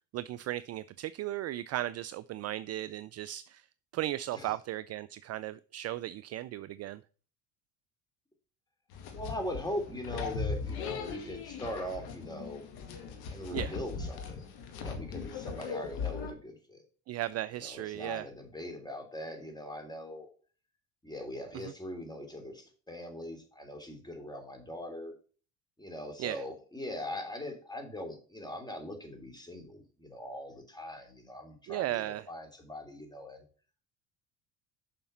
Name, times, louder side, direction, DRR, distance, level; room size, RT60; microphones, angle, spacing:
voice 1, 0.1-3.7 3.9-7.0 13.5-13.7 17.1-18.3 21.6-21.7 26.2-26.4 31.7-32.3, right 14 dB, 40° right, 17 dB, 0.4 m, -36 dB
sound 1, 8.9-16.3, left 5 dB, 65° left, 2.1 m, -39 dB
voice 2, 9.1-12.6 13.3-14.4 14.7-16.8 17.6-20.3 21.0-25.1 25.8-33.4, left 1 dB, 10° left, 4 dB, 3.0 m, -41 dB
7.0 x 5.9 x 5.6 m, 0.39 s
hypercardioid pair, 70°, 41 cm